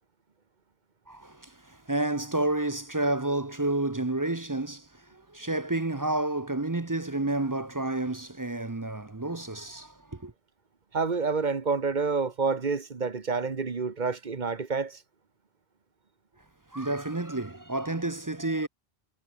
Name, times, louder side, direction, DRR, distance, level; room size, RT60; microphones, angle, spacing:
voice 1, 1.1-10.3 16.7-18.7, right 2 dB, 20° right, 0.7 m, -30 dB
voice 2, 10.9-15.0, right 4 dB, 50° right, 1.4 m, -28 dB
omnidirectional pair, 1.0 m